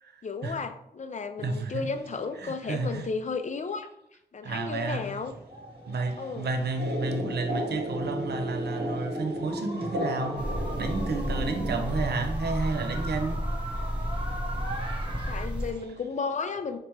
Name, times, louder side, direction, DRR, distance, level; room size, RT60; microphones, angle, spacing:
voice 1, 0.2-3.9 4.3-5.3 6.2-6.5 15.3-16.8, left 4 dB, 45° left, 0.4 m, -33 dB
voice 2, 1.4-1.9 2.4-3.1 4.4-5.2 5.9-14.4 14.7-15.7, right 3 dB, 75° right, 0.5 m, -32 dB
sound 1, 5.2-15.5, right 1 dB, 30° right, 0.9 m, -41 dB
sound 2, 6.8-12.3, equal, 55° right, 0.9 m, -34 dB
sound 3, 10.4-15.7, equal, 5° right, 0.6 m, -32 dB
3.2 x 2.9 x 4.5 m
wide cardioid pair, 75°, 17 cm